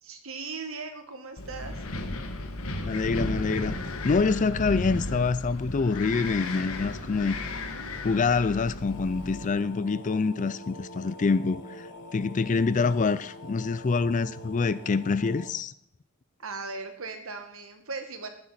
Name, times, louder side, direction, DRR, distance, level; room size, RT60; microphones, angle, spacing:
voice 1, 0.0-1.8 16.4-18.3, right 4 dB, 65° right, 1.8 m, -38 dB
Wind, 1.4-9.5, left 2 dB, 75° left, 1.3 m, -34 dB
voice 2, 2.8-3.7 4.0-7.4 8.0-11.9 12.1-15.7, left 4 dB, 35° left, 0.4 m, -26 dB
sound 1, 8.8-15.5, left 1 dB, 55° left, 1.5 m, -45 dB
15.0 x 9.9 x 4.3 m
head